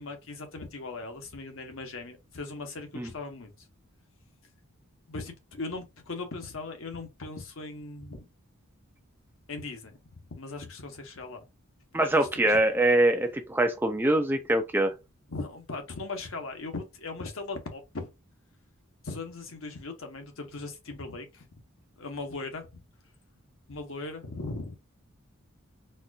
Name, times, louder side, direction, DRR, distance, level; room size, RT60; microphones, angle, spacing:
voice 1, 0.0-3.5 5.1-8.2 9.5-10.0 10.4-11.4 12.0-12.6 15.3-18.1 19.0-21.5 22.0-22.8 23.7-24.7, left 3 dB, 65° left, 0.9 m, -39 dB
voice 2, 11.9-14.9, right 1 dB, 10° right, 0.4 m, -24 dB
4.3 x 2.4 x 2.3 m
head